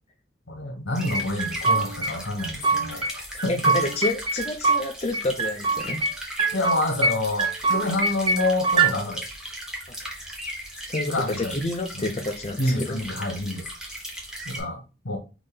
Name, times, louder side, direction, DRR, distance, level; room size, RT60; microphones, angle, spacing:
voice 1, 0.5-3.8 6.5-9.2 11.1-11.5 11.9-12.1 12.6-13.7 14.4-15.2, left 2 dB, 75° left, 1.3 m, -28 dB
sound 1, 0.9-14.6, equal, 5° right, 0.8 m, -37 dB
sound 2, 1.1-2.1 2.4-3.1 3.4-4.8 5.1-6.1 6.4-7.1 7.4-8.9, right 3 dB, 25° right, 0.5 m, -23 dB
voice 2, 2.9-6.0 10.0-10.1 10.9-13.0, left 2 dB, 30° left, 0.5 m, -29 dB
4.0 x 3.2 x 3.8 m
head